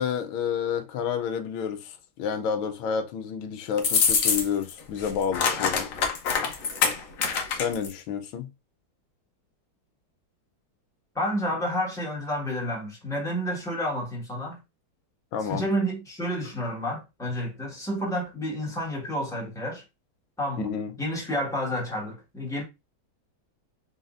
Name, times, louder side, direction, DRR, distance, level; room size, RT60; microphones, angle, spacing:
voice 1, 0.0-5.9 7.5-8.5 15.3-15.7 20.6-20.9, left 7 dB, 85° left, 1.5 m, -30 dB
sound 1, 3.8-4.7 5.0-7.9, left 6 dB, 60° left, 0.9 m, -25 dB
voice 2, 11.1-14.6 15.4-19.8 20.4-20.7 21.0-22.6, equal, ahead, 1.3 m, -30 dB
4.1 x 4.0 x 2.5 m
omnidirectional pair, 2.2 m